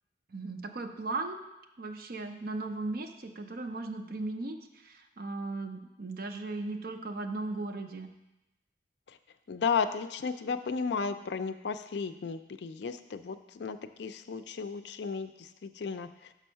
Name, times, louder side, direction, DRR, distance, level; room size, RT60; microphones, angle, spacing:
voice 1, 0.3-1.4 1.8-8.1, right 2 dB, 50° right, 5 dB, 0.6 m, -37 dB
voice 2, 9.5-16.3, left 5 dB, 65° left, 10 dB, 0.4 m, -34 dB
6.2 x 5.3 x 5.6 m, 0.96 s
head